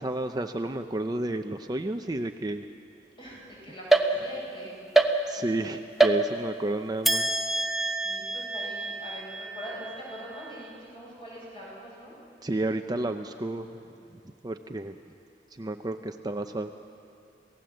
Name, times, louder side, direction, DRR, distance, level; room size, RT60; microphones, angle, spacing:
voice 1, 0.0-2.7 5.3-7.3 12.4-13.8 14.1-15.0 15.5-16.7, right 1 dB, 25° right, 6 dB, 0.6 m, -31 dB
voice 2, 3.2-4.8 7.9-12.1, equal, 30° left, -4 dB, 7.9 m, -43 dB
sound 1, 3.9-4.6 4.9-5.6 6.0-6.7 7.0-10.5, right 2 dB, ahead, 1.1 m, -26 dB
27.5 x 18.0 x 7.8 m, 2.6 s
head